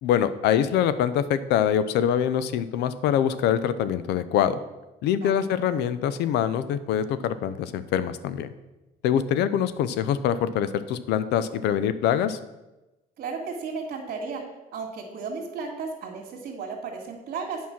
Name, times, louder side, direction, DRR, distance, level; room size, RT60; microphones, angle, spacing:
voice 1, 0.0-4.6 5.0-8.5 9.0-12.4, left 9 dB, 85° left, 14 dB, 0.6 m, -24 dB
voice 2, 13.2-14.4 14.7-17.6, right 5 dB, 65° right, -4 dB, 2.0 m, -34 dB
8.8 x 5.5 x 6.0 m, 1.0 s
cardioid pair, 110°, 17 cm